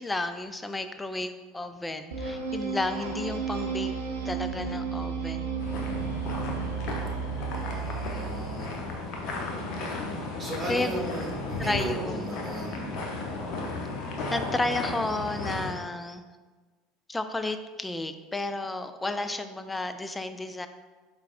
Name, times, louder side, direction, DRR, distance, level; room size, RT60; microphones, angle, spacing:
voice 1, 0.0-3.9 4.3-5.5 10.7-11.0 11.6-12.3 14.3-16.2 17.1-20.7, left 2 dB, 10° left, 9 dB, 0.3 m, -32 dB
sound 1, 2.1-8.6, right 6 dB, 85° right, 0.5 m, -33 dB
sound 2, 5.6-15.7, left 3 dB, 60° left, 0.7 m, -34 dB
voice 2, 7.5-8.7 10.4-12.8, right 2 dB, 20° right, -2 dB, 1.3 m, -36 dB
4.6 x 3.4 x 2.4 m, 1.3 s
hypercardioid pair, 75°, 0 cm